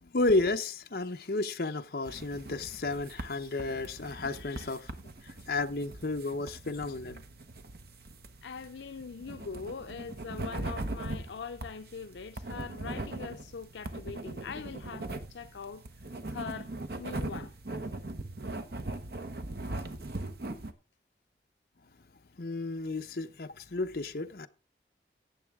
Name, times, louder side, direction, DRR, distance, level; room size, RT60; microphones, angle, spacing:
voice 1, 0.0-5.0 5.2-7.2 22.4-24.5, left 2 dB, 60° left, 0.8 m, -32 dB
sound 1, 2.0-20.7, right 2 dB, 60° right, 1.0 m, -40 dB
voice 2, 8.4-15.8 16.3-16.7 17.0-17.6, left 5 dB, 90° left, 0.5 m, -42 dB
16.5 x 7.2 x 3.6 m
head